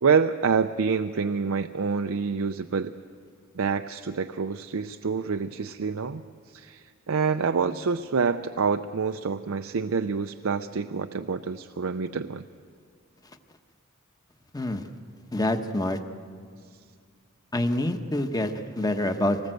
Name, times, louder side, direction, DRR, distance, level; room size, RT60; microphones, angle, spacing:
voice 1, 0.0-2.9 3.5-6.2 6.5-12.4, right 5 dB, 85° right, 8 dB, 0.6 m, -27 dB
voice 2, 15.3-16.0 17.5-19.4, left 1 dB, 20° left, 7 dB, 1.1 m, -26 dB
25.0 x 19.5 x 7.8 m, 2.1 s
head